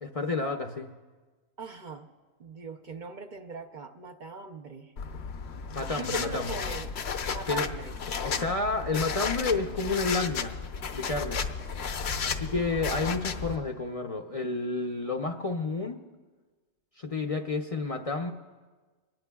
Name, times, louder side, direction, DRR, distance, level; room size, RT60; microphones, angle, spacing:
voice 1, 0.0-0.9 5.7-6.6 7.5-7.7 8.2-10.5 10.9-11.4 12.2-16.0 17.0-18.3, left 3 dB, 40° left, 4 dB, 0.6 m, -30 dB
voice 2, 1.6-2.1 2.4-4.9 6.0-6.9 7.2-8.0 12.1-12.5, right 5 dB, 50° right, 4 dB, 0.8 m, -41 dB
sound 1, 5.0-13.6, left 5 dB, 70° left, 1.0 m, -33 dB
24.5 x 19.5 x 2.3 m, 1.4 s
omnidirectional pair, 1.1 m